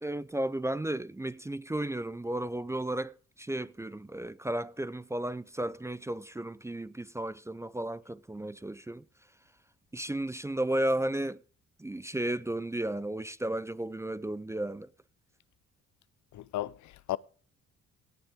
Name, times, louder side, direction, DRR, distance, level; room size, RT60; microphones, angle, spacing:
voice 1, 0.0-9.0 9.9-11.4 11.8-14.9, right 1 dB, 10° right, 0.4 m, -34 dB
voice 2, 16.3-17.2, left 14 dB, 70° left, 0.6 m, -35 dB
17.0 x 8.7 x 3.5 m
cardioid pair, 90°, 30 cm